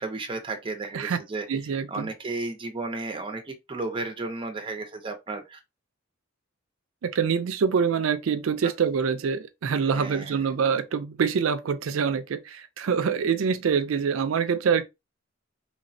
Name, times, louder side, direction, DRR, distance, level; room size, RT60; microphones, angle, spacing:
voice 1, 0.0-1.4 1.9-5.6 9.9-10.4, right 3 dB, 25° right, 0.5 m, -33 dB
voice 2, 1.5-2.1 7.0-14.8, right 6 dB, 80° right, 0.4 m, -25 dB
3.1 x 2.1 x 2.6 m
head